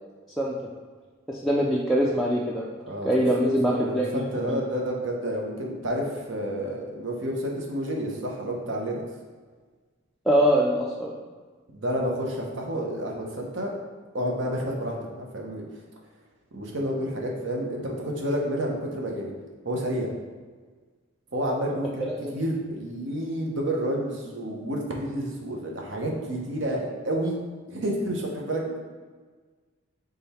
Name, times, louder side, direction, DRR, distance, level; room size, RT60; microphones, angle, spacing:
voice 1, 1.3-2.7 3.0-4.2 10.3-11.1 22.1-22.3, equal, ahead, -5 dB, 0.3 m, -23 dB
voice 2, 3.4-9.0 11.7-13.7 14.1-15.6 16.5-19.3 19.6-20.1 21.3-27.4 27.7-28.8, right 1 dB, 60° right, -1 dB, 0.8 m, -30 dB
3.7 x 3.4 x 4.2 m, 1.4 s
head